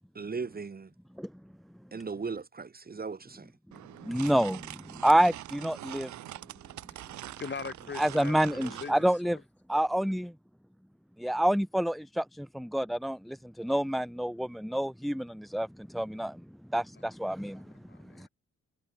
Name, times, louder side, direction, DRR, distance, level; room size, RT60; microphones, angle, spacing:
voice 1, 0.1-0.9 1.9-3.5, right 5 dB, 30° right, 2.7 m, -37 dB
sound 1, 3.7-8.9, right 14 dB, 70° right, 0.9 m, -44 dB
voice 2, 4.0-6.1 8.0-9.4 9.7-10.3 11.2-16.4 16.7-17.6 18.2-18.3, right 1 dB, ahead, 0.5 m, -28 dB
voice 3, 7.4-8.9 9.2-9.4 17.5-18.3, left 5 dB, 35° left, 5.6 m, -41 dB
cardioid pair, 90°, 30 cm